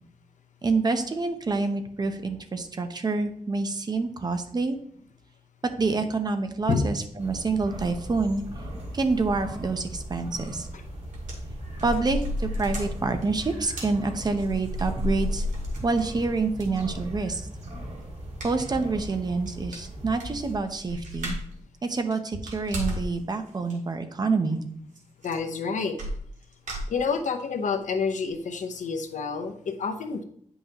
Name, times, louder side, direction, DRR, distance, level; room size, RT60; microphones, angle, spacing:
voice 1, 0.6-4.8 5.6-8.4 8.9-10.7 11.8-15.4 15.8-17.5 18.4-21.4 21.8-24.6, right 3 dB, 35° right, 7 dB, 0.7 m, -27 dB
sound 1, 7.2-20.6, equal, 60° right, 1.8 m, -38 dB
sound 2, 10.6-10.8 11.1-16.2 16.6-16.7 18.4-18.7 19.0-19.1 19.5-19.6 19.7-21.6 22.0-23.1 23.5-23.8 25.0-25.1 25.2-25.6 26.0-27.4 27.9-28.0 28.3-28.4, left 1 dB, 85° right, 1.8 m, -33 dB
voice 2, 25.2-26.0 26.9-30.2, left 5 dB, 90° left, 7 dB, 0.8 m, -28 dB
9.3 x 5.5 x 2.8 m, 0.65 s
wide cardioid pair, 180°, 12 cm